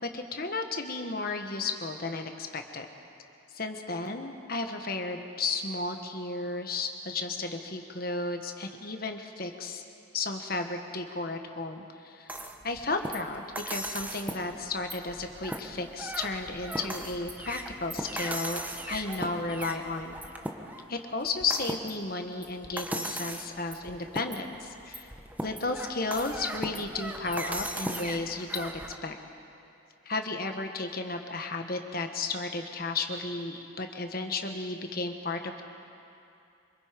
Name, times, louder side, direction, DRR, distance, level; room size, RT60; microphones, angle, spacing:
voice 1, 0.1-2.9 3.5-9.8 10.1-12.4 12.6-18.6 18.9-20.2 20.9-25.1 25.4-28.7 29.0-29.1 30.0-35.6, left 3 dB, 45° left, 5 dB, 1.4 m, -33 dB
sound 1, 12.3-29.0, right 1 dB, 10° right, 1.0 m, -38 dB
25.5 x 23.5 x 5.3 m, 2.7 s
head